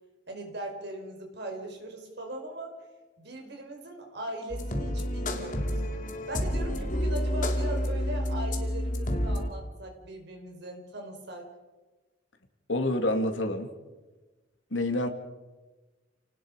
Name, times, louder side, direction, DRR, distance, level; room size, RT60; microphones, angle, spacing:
voice 1, 0.3-2.7 3.2-5.8 6.3-11.5, right 1 dB, 60° right, 2 dB, 4.8 m, -39 dB
sound 1, 4.5-9.5, equal, 45° left, 2.7 m, -29 dB
voice 2, 12.7-13.7 14.7-15.1, left 1 dB, 85° left, 5 dB, 2.5 m, -27 dB
29.5 x 19.0 x 5.1 m, 1.2 s
head